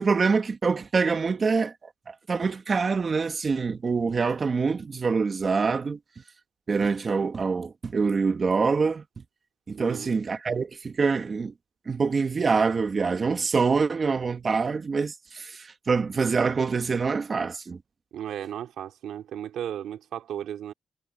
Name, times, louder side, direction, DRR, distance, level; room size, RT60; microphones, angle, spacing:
voice 1, 0.0-1.7 2.1-6.0 6.7-9.2 9.7-11.5 11.9-17.8, right 4 dB, 40° right, 2.2 m, -25 dB
voice 2, 9.7-10.1 18.1-20.7, right 10 dB, 85° right, 2.6 m, -35 dB
cardioid pair, 90°, 0 cm